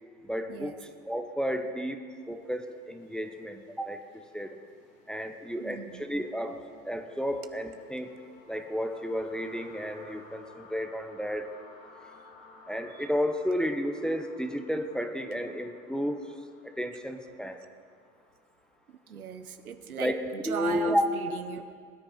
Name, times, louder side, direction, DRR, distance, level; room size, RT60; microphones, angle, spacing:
voice 1, 0.2-4.6 5.1-8.1 8.5-11.5 12.7-16.2 16.6-17.6 20.0-20.1 20.4-21.0, equal, ahead, 6 dB, 0.8 m, -32 dB
sound 1, 2.3-20.1, left 3 dB, 70° left, 4.5 m, -56 dB
voice 2, 5.6-6.0 12.9-13.1 19.1-21.8, right 7 dB, 85° right, 10 dB, 0.9 m, -38 dB
21.0 x 9.8 x 4.4 m, 2.1 s
hypercardioid pair, 90°, 42 cm